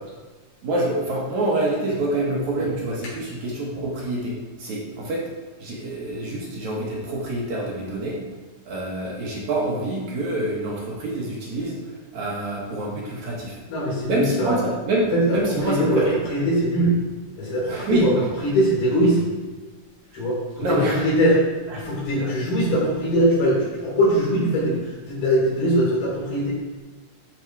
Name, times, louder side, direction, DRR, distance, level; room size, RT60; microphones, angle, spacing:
voice 1, 0.6-5.3 5.6-8.2 8.7-13.6 14.1-16.2 17.7-18.2 20.1-20.2 20.6-21.1 21.7-21.8 22.2-22.3, right 1 dB, 60° right, -3 dB, 2.4 m, -26 dB
voice 2, 13.7-14.5 15.1-17.0 17.4-19.3 20.1-21.4 21.7-26.6, equal, 80° left, -5 dB, 5.4 m, -21 dB
13.0 x 4.8 x 4.6 m, 1.3 s
omnidirectional pair, 4.3 m